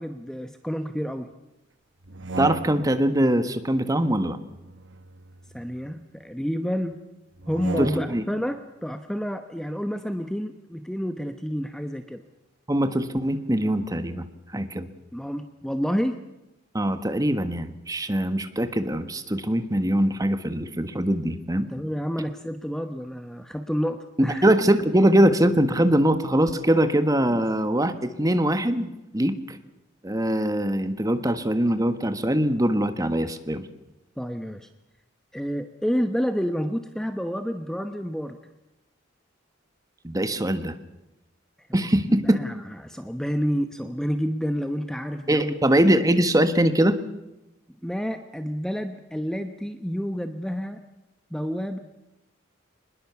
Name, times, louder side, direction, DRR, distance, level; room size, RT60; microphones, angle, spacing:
voice 1, 0.0-1.3 5.5-6.9 7.5-12.2 15.1-16.2 21.7-24.5 34.2-34.7 35.3-38.4 42.1-45.5 47.8-50.8 51.3-51.8, equal, 5° left, 8 dB, 1.0 m, -29 dB
sound 1, 2.0-3.1 4.4-6.0 7.4-8.4, right 2 dB, 65° right, 1.3 m, -36 dB
voice 2, 2.4-4.4 7.8-8.2 12.7-14.2 14.5-14.9 16.7-21.7 24.2-29.6 30.0-33.7 40.0-40.7 41.7-42.4 45.3-47.0, right 1 dB, 20° right, 10 dB, 1.4 m, -22 dB
24.0 x 20.5 x 7.1 m, 0.95 s
head